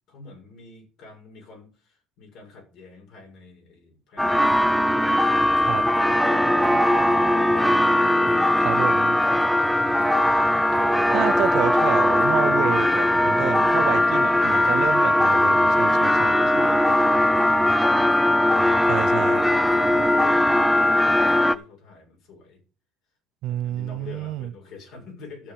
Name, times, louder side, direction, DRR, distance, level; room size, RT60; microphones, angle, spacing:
voice 1, 0.1-5.0 5.4-5.8 6.2-6.8 7.2-7.7 9.8-11.4 13.2-14.2 16.3-18.4 19.0-19.3 19.7-22.6 23.4-25.5, left 4 dB, 65° left, 6.3 m, -46 dB
sound 1, 4.2-21.6, left 1 dB, 5° left, 0.8 m, -19 dB
voice 2, 8.6-9.2 11.1-16.4 18.9-19.5 23.4-24.5, right 14 dB, 70° right, 0.6 m, -29 dB
12.5 x 7.3 x 5.1 m
cardioid pair, 105°, 0 cm